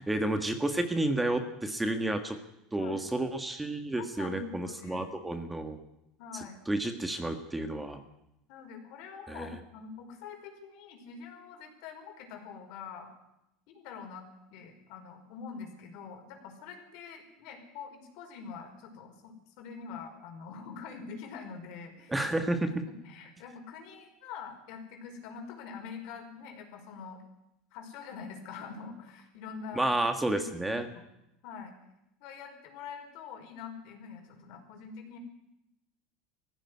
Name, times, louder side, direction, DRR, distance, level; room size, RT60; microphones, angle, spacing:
voice 1, 0.0-2.4 2.7-5.8 6.3-8.0 9.3-9.5 22.1-22.7 29.7-30.9, right 1 dB, 10° right, 7 dB, 1.6 m, -31 dB
voice 2, 4.0-5.2 6.2-6.6 8.5-13.1 13.7-22.3 23.0-27.2 27.7-29.9 30.2-31.0 31.4-31.7 32.2-35.2, left 6 dB, 65° left, 4 dB, 5.1 m, -45 dB
18.5 x 15.5 x 9.7 m, 0.85 s
supercardioid pair, 140°, 0 cm